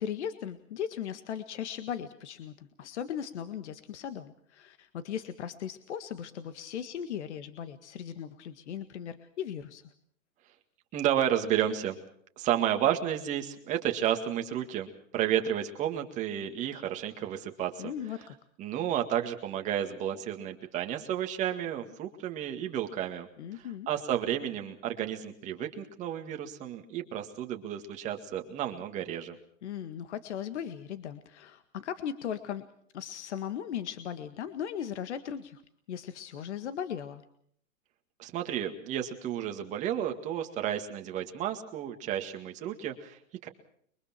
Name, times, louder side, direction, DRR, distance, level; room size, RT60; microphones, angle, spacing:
voice 1, 0.0-9.8 17.8-18.3 23.4-23.9 29.6-32.6 32.9-35.6 35.9-37.2, left 9 dB, 60° left, 10 dB, 1.9 m, -38 dB
voice 2, 10.9-12.0 12.4-17.9 18.6-23.3 23.5-29.4 38.2-43.5, right 10 dB, 20° right, 5 dB, 2.0 m, -32 dB
30.0 x 24.0 x 4.4 m, 0.63 s
hypercardioid pair, 165°, 39 cm